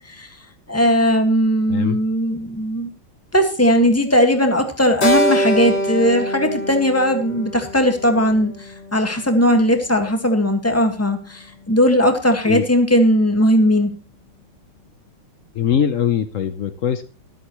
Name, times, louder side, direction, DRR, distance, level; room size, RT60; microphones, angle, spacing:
voice 1, 0.7-2.9 3.3-8.5 8.9-13.9, equal, 10° left, 5 dB, 1.5 m, -18 dB
voice 2, 1.7-2.0 12.4-12.7 15.5-17.1, left 8 dB, 80° left, 10 dB, 0.7 m, -21 dB
Keyboard (musical), 5.0-9.4, equal, 35° left, 1.7 m, -24 dB
23.5 x 8.0 x 3.1 m, 0.33 s
omnidirectional pair, 2.4 m